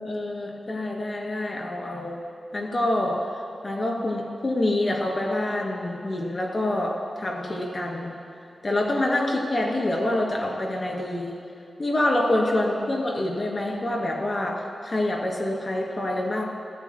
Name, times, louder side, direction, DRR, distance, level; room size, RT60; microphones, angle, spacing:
voice 1, 0.0-2.2 2.5-3.2 3.6-8.1 8.6-11.3 11.8-16.4, left 1 dB, 40° left, -1 dB, 2.7 m, -26 dB
23.0 x 14.0 x 2.2 m, 2.6 s
wide cardioid pair, 90°, 0 cm